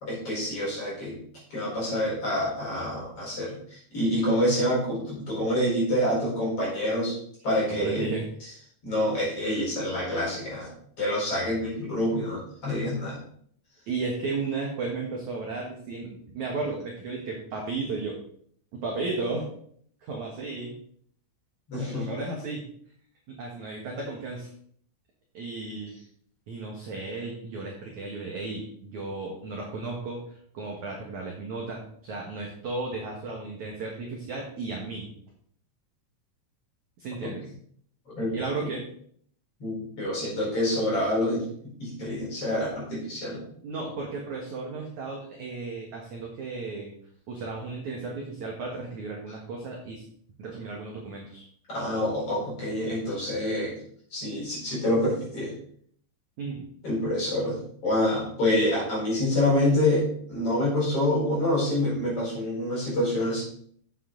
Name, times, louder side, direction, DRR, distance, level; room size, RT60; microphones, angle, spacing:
voice 1, 0.0-1.2 1.5-7.2 7.4-8.1 8.8-10.7 11.0-13.2 21.7-22.0 37.2-37.3 38.2-38.3 39.6-41.4 41.8-43.5 51.7-53.7 54.1-55.5 56.8-57.6 57.8-63.4, left 1 dB, 30° left, -6 dB, 4.9 m, -27 dB
voice 2, 7.7-8.3 13.9-16.1 16.3-18.2 18.7-19.5 20.0-20.7 21.7-22.6 23.3-24.5 25.3-26.0 26.5-30.2 30.5-35.1 37.0-37.4 38.3-38.8 43.6-46.9 47.3-50.0 50.4-51.4 56.4-56.6, right 3 dB, 65° right, -1 dB, 2.0 m, -34 dB
9.5 x 7.7 x 3.9 m, 0.62 s
omnidirectional pair, 5.4 m